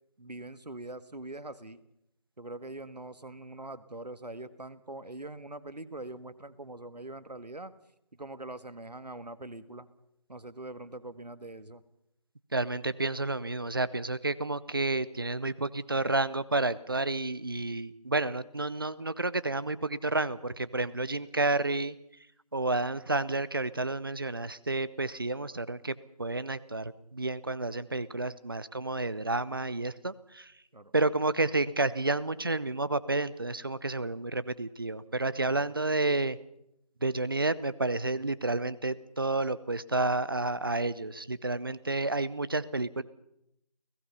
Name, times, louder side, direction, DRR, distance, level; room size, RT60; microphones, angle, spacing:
voice 1, 0.2-1.8 2.4-7.7 8.1-9.9 10.3-11.8 30.7-30.9, right 2 dB, 85° right, 13 dB, 1.6 m, -43 dB
voice 2, 12.5-22.0 22.5-30.5 30.9-36.4 37.0-43.0, right 2 dB, 35° right, 17 dB, 0.7 m, -30 dB
29.5 x 17.5 x 5.6 m, 0.79 s
figure-of-eight pair, 165°, 21 cm